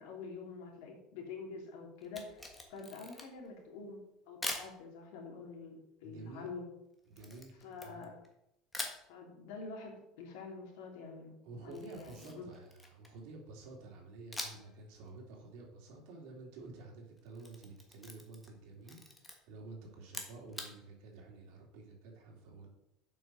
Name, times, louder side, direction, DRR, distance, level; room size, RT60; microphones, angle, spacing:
voice 1, 0.0-4.0 4.3-6.7 7.6-8.1 9.1-11.3 11.6-12.5, left 4 dB, 75° left, 1 dB, 2.9 m, -47 dB
Camera, 2.0-3.5 4.4-4.7 7.2-8.3 8.7-9.0 11.7-13.2 14.3-14.8 15.1-15.2 17.2-18.6 18.8-19.3 20.0-20.7, left 2 dB, 10° left, 1.4 m, -43 dB
voice 2, 6.0-6.5 7.1-8.1 11.4-22.7, right 3 dB, 65° right, 0 dB, 3.0 m, -51 dB
7.8 x 6.1 x 6.2 m, 0.83 s
cardioid pair, 155°, 0 cm